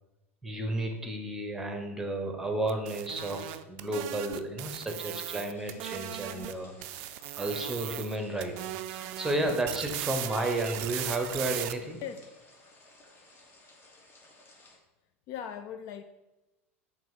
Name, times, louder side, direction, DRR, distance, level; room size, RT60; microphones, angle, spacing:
voice 1, 0.4-8.6 8.9-12.0, right 1 dB, 5° right, 4 dB, 1.0 m, -32 dB
sound 1, 2.7-6.5 6.8-8.2 8.4-11.7, right 14 dB, 50° right, 0.4 m, -38 dB
sound 2, 5.5-14.8, left 2 dB, 30° left, 1.2 m, -57 dB
voice 2, 15.3-16.0, left 8 dB, 45° left, 9 dB, 0.4 m, -39 dB
7.3 x 2.7 x 5.7 m, 1.0 s
figure-of-eight pair, 85°, 7 cm